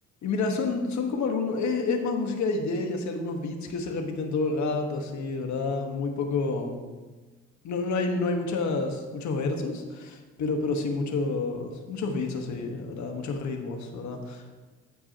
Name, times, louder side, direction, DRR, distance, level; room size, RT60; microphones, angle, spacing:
voice 1, 0.2-6.8 7.6-14.6, left 3 dB, 70° left, 4 dB, 1.3 m, -29 dB
14.0 x 6.1 x 2.9 m, 1.3 s
cardioid pair, 90°, 30 cm